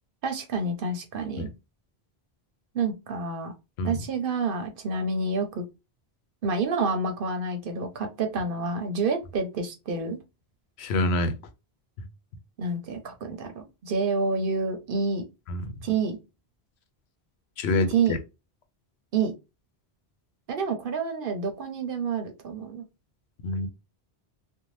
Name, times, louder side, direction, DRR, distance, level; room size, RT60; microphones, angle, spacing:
voice 1, 0.2-1.5 2.7-3.5 3.8-5.6 6.4-10.2 12.6-15.2 15.8-16.2 17.9-18.2 19.1-19.3 20.5-22.8, right 4 dB, 60° right, 0.7 m, -28 dB
voice 2, 10.8-11.4 15.5-15.7 17.6-18.2 23.4-23.7, left 2 dB, 85° left, 0.8 m, -26 dB
2.7 x 2.1 x 3.0 m
omnidirectional pair, 1.1 m